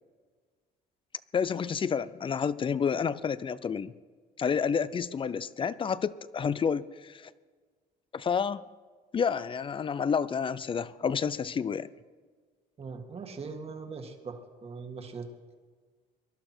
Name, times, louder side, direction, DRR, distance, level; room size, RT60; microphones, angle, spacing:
voice 1, 1.3-3.9 4.4-7.3 8.1-8.6 9.1-11.9, left 6 dB, 30° left, 17 dB, 0.5 m, -29 dB
voice 2, 12.8-15.3, right 4 dB, 35° right, 5 dB, 1.9 m, -41 dB
19.5 x 12.0 x 4.5 m, 1.5 s
cardioid pair, 110°, 17 cm